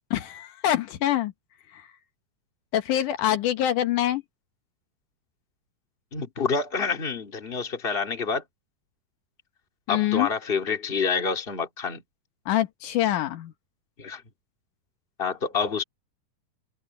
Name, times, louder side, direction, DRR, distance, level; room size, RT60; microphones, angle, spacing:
voice 1, 0.1-1.3 2.7-4.2 9.9-10.3 12.5-13.5, left 12 dB, 75° left, 2.5 m, -25 dB
voice 2, 6.1-8.4 9.9-12.0 14.0-14.2 15.2-15.8, left 5 dB, 20° left, 2.3 m, -27 dB
open air
omnidirectional pair, 3.7 m